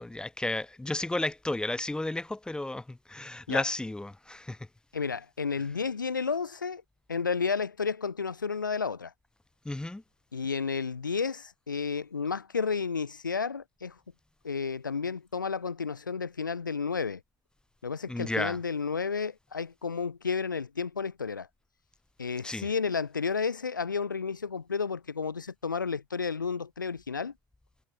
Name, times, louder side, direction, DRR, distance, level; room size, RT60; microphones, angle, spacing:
voice 1, 0.0-4.6 9.6-10.0 18.1-18.6 22.4-22.7, left 2 dB, 10° left, 5.0 m, -33 dB
voice 2, 4.9-6.8 7.1-9.1 10.3-14.0 14.4-17.2 17.8-21.5 22.2-27.3, left 5 dB, 85° left, 4.3 m, -32 dB
figure-of-eight pair, 70°, 10 cm